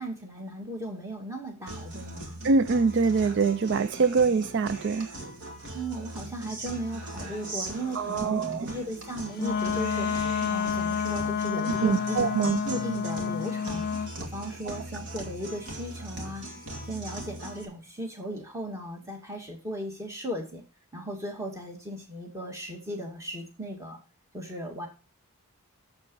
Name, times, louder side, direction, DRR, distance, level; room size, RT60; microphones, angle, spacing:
voice 1, 0.0-2.4 5.7-10.1 10.5-13.9 14.2-16.5 16.8-20.6 20.9-24.0 24.3-24.9, right 1 dB, 15° right, 2.3 m, -37 dB
Guitar, 1.7-17.6, right 1 dB, 75° right, 2.4 m, -40 dB
voice 2, 2.4-5.1 8.0-8.7 11.8-12.6, right 4 dB, 55° right, 0.4 m, -24 dB
Wind instrument woodwind instrument, 9.3-14.1, left 7 dB, 45° left, 0.4 m, -29 dB
7.7 x 7.4 x 5.4 m
head